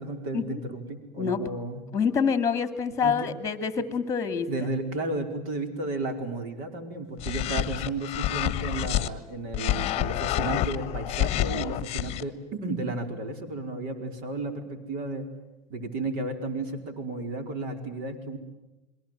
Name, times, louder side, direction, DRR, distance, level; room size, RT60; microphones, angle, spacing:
voice 1, 0.0-1.8 3.0-3.3 4.5-15.3 15.7-18.4, right 2 dB, 40° right, 7 dB, 4.9 m, -33 dB
voice 2, 1.9-4.5, left 6 dB, 15° left, 11 dB, 2.4 m, -26 dB
sound 1, 7.2-9.1 9.5-12.2, left 14 dB, 30° left, 1.5 m, -28 dB
28.5 x 22.5 x 9.1 m, 1.0 s
supercardioid pair, 135°, 21 cm